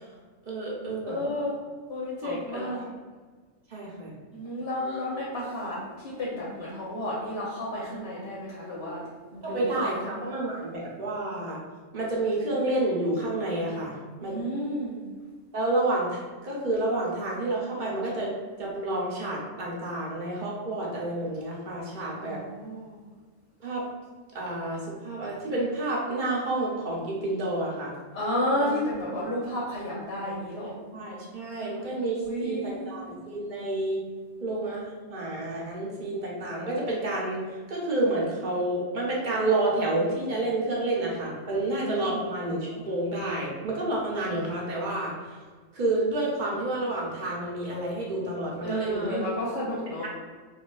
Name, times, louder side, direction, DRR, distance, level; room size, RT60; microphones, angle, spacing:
voice 1, 0.5-1.2 2.2-2.6 3.7-4.1 9.4-11.6 11.9-13.9 14.2-14.3 15.5-18.3 18.6-22.4 23.6-23.8 24.3-27.9 28.6-28.7 30.6-34.0 34.4-37.4 37.7-45.4 45.7-49.3, right 2 dB, 50° right, -5 dB, 0.7 m, -29 dB
voice 2, 1.1-1.5 1.9-2.8 4.3-10.2 14.2-15.0 22.0-23.0 28.1-30.7 32.1-33.0 41.5-42.2 48.6-50.0, left 1 dB, 60° left, -7 dB, 0.8 m, -32 dB
3.1 x 2.3 x 2.2 m, 1.5 s
omnidirectional pair, 1.3 m